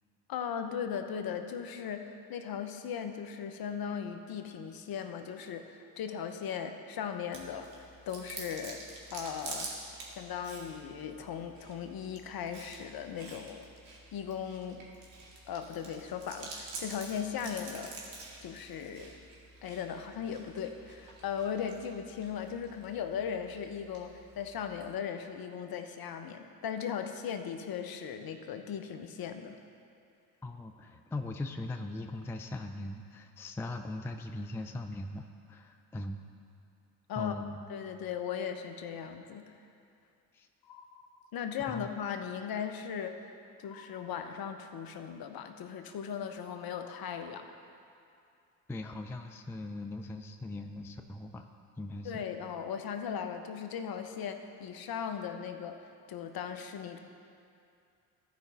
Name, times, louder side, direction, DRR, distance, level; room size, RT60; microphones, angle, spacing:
voice 1, 0.3-2.0 2.3-8.8 9.1-9.7 10.1-13.7 14.1-14.9 15.5-18.0 18.4-19.2 19.6-29.6 37.1-37.3 37.7-39.4 41.3-43.3 43.6-47.5 52.0-55.8 56.1-57.0, left 7 dB, 45° left, 7 dB, 0.9 m, -38 dB
Chewing mastication, 7.3-24.9, right 3 dB, 65° right, 2.1 m, -48 dB
voice 2, 30.4-36.2 37.2-37.6 40.3-40.5 41.7-41.9 48.7-51.5 51.8-52.2, left 2 dB, 5° left, 5 dB, 0.4 m, -40 dB
sound 1, 40.6-41.9 43.6-44.9 46.9-48.1, left 6 dB, 85° left, 0.8 m, -57 dB
15.0 x 5.2 x 4.1 m, 2.5 s
hypercardioid pair, 60°, 48 cm